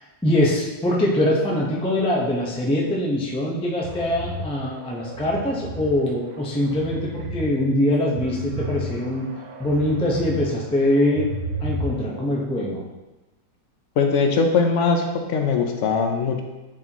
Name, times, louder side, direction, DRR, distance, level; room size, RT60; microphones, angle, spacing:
voice 1, 0.2-9.3 9.6-11.3 11.6-12.8, left 1 dB, 5° left, -4 dB, 0.5 m, -23 dB
sound 1, 3.8-5.9 6.4-7.4 7.8-10.4 10.8-12.2, right 1 dB, 60° right, 1.1 m, -33 dB
voice 2, 14.0-15.0 15.3-16.4, left 5 dB, 60° left, 4 dB, 0.7 m, -20 dB
10.5 x 4.2 x 3.0 m, 1.1 s
omnidirectional pair, 2.1 m